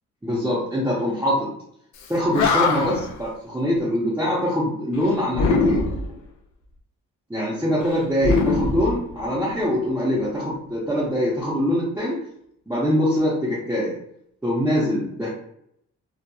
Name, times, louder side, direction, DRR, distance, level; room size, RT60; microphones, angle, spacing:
voice 1, 0.2-1.5 2.1-5.8 7.3-12.2 12.7-13.9 14.4-15.3, equal, 5° right, -9 dB, 0.9 m, -23 dB
Animal, 2.0-2.1 2.3-3.2 5.3-6.2 8.2-9.5, left 3 dB, 70° left, 0.6 m, -22 dB
2.9 x 2.4 x 2.3 m, 0.73 s
cardioid pair, 90°, 30 cm